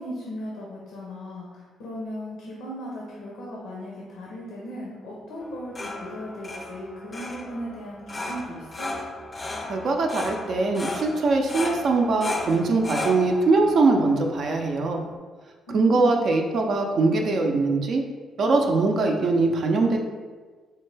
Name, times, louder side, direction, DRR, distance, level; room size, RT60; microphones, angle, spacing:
voice 1, 0.0-8.9 15.7-16.2, equal, 90° left, -3 dB, 0.6 m, -37 dB
sound 1, 5.4-15.1, left 2 dB, 30° left, 0.4 m, -36 dB
voice 2, 9.7-15.0 15.7-18.0 18.4-20.0, right 3 dB, 60° right, 2 dB, 0.4 m, -22 dB
4.0 x 2.2 x 3.2 m, 1.4 s
cardioid pair, 90°, 0 cm